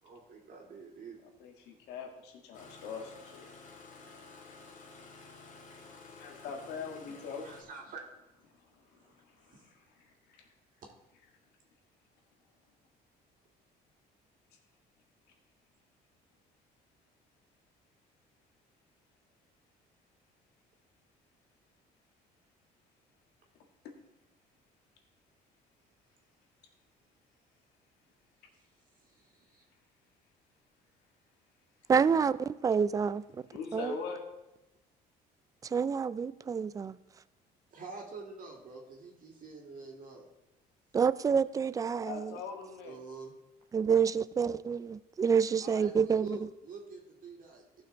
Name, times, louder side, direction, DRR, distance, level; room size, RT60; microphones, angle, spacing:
voice 1, 0.0-1.3 5.5-6.2 7.4-8.1 9.0-9.1 9.5-9.7 28.5-28.6 29.0-29.6 33.3-33.4 37.7-40.3 42.8-43.3 45.6-47.8, right 4 dB, 55° right, 2.3 m, -47 dB
voice 2, 1.2-3.5 6.2-7.5 9.5-9.7 33.5-34.2 42.0-43.0, left 5 dB, 85° left, 1.8 m, -41 dB
Engine starting, 2.5-7.6, left 3 dB, 50° left, 2.0 m, -52 dB
voice 3, 31.9-33.4 33.7-34.0 35.6-37.0 40.9-42.4 43.7-46.4, right 6 dB, 20° right, 0.3 m, -28 dB
15.0 x 5.7 x 4.0 m
cardioid pair, 110°, 17 cm